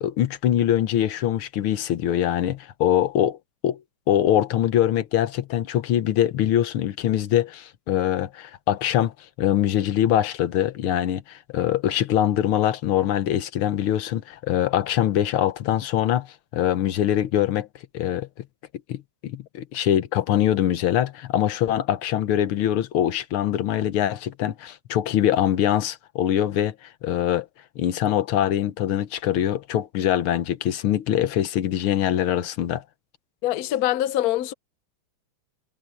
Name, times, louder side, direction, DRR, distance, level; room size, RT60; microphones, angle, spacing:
voice 1, 0.0-3.4 3.6-3.8 4.1-17.7 17.9-18.3 18.9-27.5 27.8-32.8, left 11 dB, 90° left, 1.9 m, -23 dB
voice 2, 33.4-34.5, left 13 dB, 65° left, 1.0 m, -24 dB
omnidirectional pair, 2.3 m